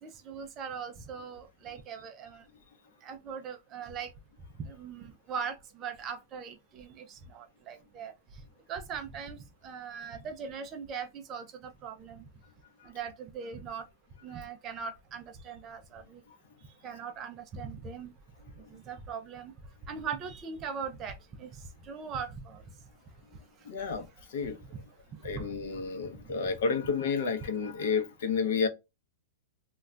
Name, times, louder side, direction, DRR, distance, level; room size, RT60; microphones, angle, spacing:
voice 1, 0.0-2.5 3.0-4.1 4.6-8.4 8.7-12.3 12.8-13.9 14.2-16.2 16.8-18.1 18.6-19.5 19.9-22.6 25.3-25.5 26.2-26.3, right 6 dB, 20° right, 0.3 m, -40 dB
voice 2, 23.6-24.6 25.2-28.7, left 5 dB, 50° left, 0.6 m, -31 dB
2.2 x 2.2 x 3.7 m
supercardioid pair, 180°, 0 cm